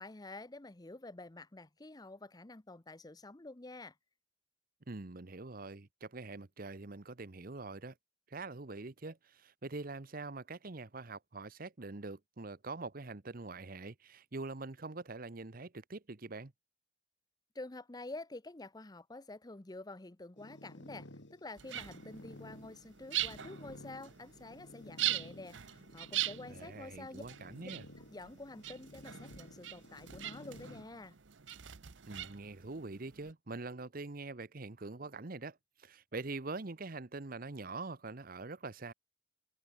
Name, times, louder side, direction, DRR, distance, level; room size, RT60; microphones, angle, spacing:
voice 1, 0.0-3.9 17.5-27.2 27.6-27.7 28.1-31.2, left 2 dB, 20° left, 0.8 m, -48 dB
voice 2, 4.9-7.9 8.3-16.5 26.5-27.9 32.1-38.9, right 3 dB, 50° right, 1.0 m, -44 dB
sound 1, 20.4-30.8, left 1 dB, 70° left, 3.0 m, -54 dB
sound 2, 21.6-33.3, right 14 dB, 75° right, 0.9 m, -42 dB
head